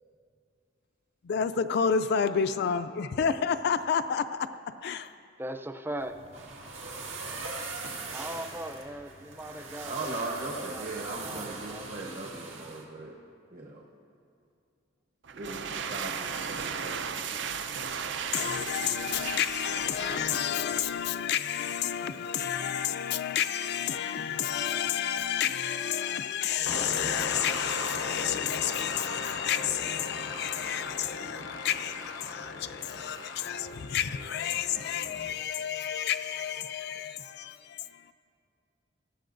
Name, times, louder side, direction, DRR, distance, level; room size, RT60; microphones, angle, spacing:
voice 1, 1.2-4.5 4.8-5.2 18.3-38.1, left 8 dB, 60° left, 0.4 m, -30 dB
voice 2, 5.4-6.2 8.1-10.2 10.7-12.0, right 1 dB, 10° right, 0.5 m, -39 dB
sound 1, 6.0-12.8, right 3 dB, 90° right, 1.8 m, -40 dB
voice 3, 9.8-13.2 13.5-13.8 15.3-17.2, right 2 dB, 50° right, 1.1 m, -39 dB
sound 2, 15.2-21.0, right 6 dB, 70° right, 0.6 m, -36 dB
sound 3, 26.7-35.3, left 3 dB, 85° left, 0.8 m, -37 dB
19.0 x 14.5 x 2.6 m
head